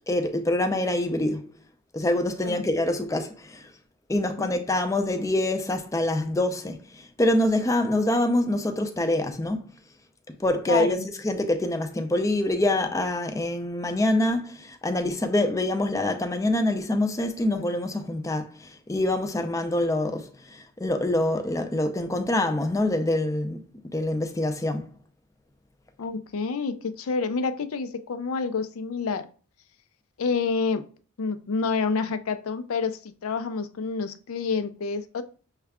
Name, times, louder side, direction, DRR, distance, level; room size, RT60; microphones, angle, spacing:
voice 1, 0.1-1.5 1.9-3.7 4.1-9.6 10.4-11.0 11.2-23.6 23.9-24.9, left 1 dB, 15° left, 0.4 m, -25 dB
voice 2, 10.7-11.1 26.0-29.3 30.2-30.9 31.2-35.2, left 4 dB, 80° left, 0.5 m, -28 dB
6.4 x 2.3 x 3.5 m
head